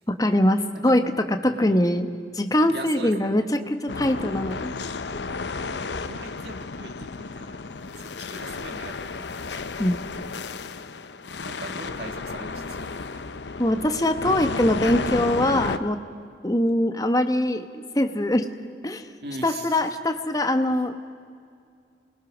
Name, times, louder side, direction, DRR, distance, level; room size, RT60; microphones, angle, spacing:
voice 1, 0.1-2.1 2.3-4.7 9.8-10.0 13.6-16.0 16.4-17.6 17.9-18.5 18.8-19.1 19.4-21.1, left 1 dB, 20° left, 7 dB, 1.1 m, -22 dB
voice 2, 1.5-1.9 2.7-3.5 5.1-5.8 6.1-7.6 8.0-9.3 11.4-13.2 19.2-19.8, right 2 dB, 65° right, 5 dB, 1.9 m, -40 dB
sound 1, 3.9-15.8, left 4 dB, 80° left, 0.8 m, -33 dB
28.0 x 20.5 x 6.2 m, 2.2 s
head